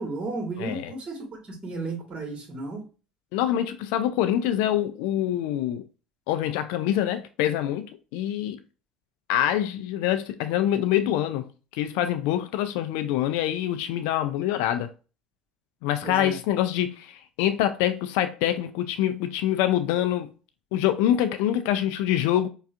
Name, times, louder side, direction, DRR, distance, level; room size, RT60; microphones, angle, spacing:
voice 1, 0.0-2.8 16.0-16.4, right 3 dB, 35° right, 1.6 m, -34 dB
voice 2, 0.6-0.9 3.3-5.8 6.3-8.6 9.3-14.9 15.8-20.3 20.7-22.5, left 11 dB, 70° left, 0.3 m, -25 dB
4.8 x 2.4 x 2.4 m
hypercardioid pair, 65°, 3 cm